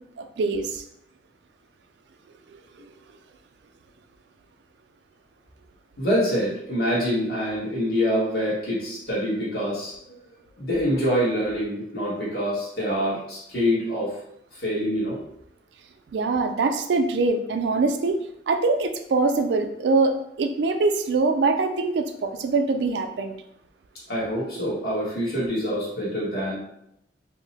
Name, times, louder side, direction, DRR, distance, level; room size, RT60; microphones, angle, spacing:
voice 1, 0.2-0.8 16.1-18.2 18.5-23.3, right 3 dB, 70° right, 7 dB, 0.4 m, -23 dB
voice 2, 6.0-10.2 10.6-14.2 14.5-15.2 24.1-26.6, equal, 60° left, -8 dB, 1.3 m, -25 dB
2.9 x 2.0 x 3.9 m, 0.77 s
head